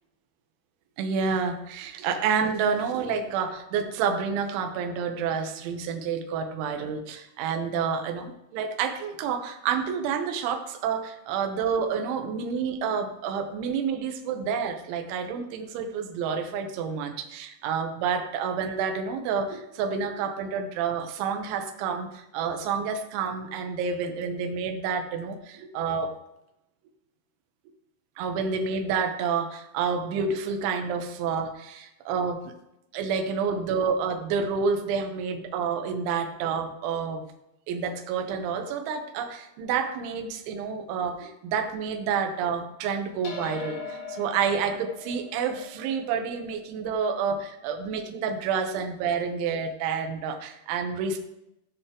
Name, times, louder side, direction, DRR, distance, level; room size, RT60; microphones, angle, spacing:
voice 1, 1.0-26.1 28.2-32.5 32.9-37.3 37.7-51.2, right 6 dB, 75° right, 4 dB, 3.3 m, -29 dB
sound 1, 43.2-47.9, left 5 dB, 65° left, 3.1 m, -41 dB
16.0 x 6.7 x 3.8 m, 0.84 s
omnidirectional pair, 5.7 m